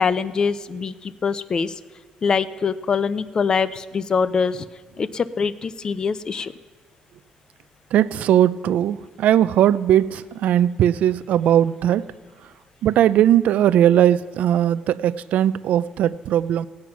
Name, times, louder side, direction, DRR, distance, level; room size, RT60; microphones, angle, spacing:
voice 1, 0.0-1.7 2.2-4.6 5.0-6.5, left 5 dB, 30° left, 16 dB, 0.5 m, -23 dB
voice 2, 7.9-12.0 12.8-16.7, right 11 dB, 70° right, 16 dB, 0.4 m, -19 dB
18.0 x 8.6 x 5.9 m, 1.4 s
cardioid pair, 160°, 3 cm